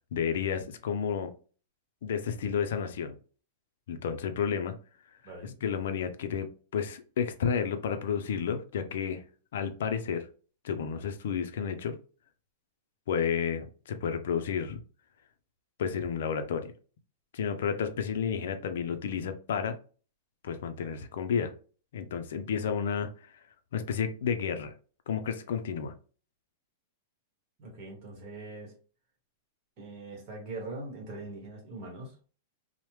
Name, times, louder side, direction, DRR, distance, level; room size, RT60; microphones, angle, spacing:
voice 1, 0.1-1.3 2.0-3.2 3.9-4.8 5.4-9.2 9.5-10.3 10.6-12.0 13.1-14.8 15.8-16.7 17.3-19.8 20.4-21.5 21.9-23.3 23.7-24.7 25.1-25.9, left 7 dB, 65° left, 9 dB, 0.4 m, -31 dB
voice 2, 27.6-28.7 29.8-32.3, right 2 dB, 30° right, 1 dB, 1.1 m, -42 dB
3.2 x 2.0 x 3.0 m, 0.38 s
supercardioid pair, 175°, 0 cm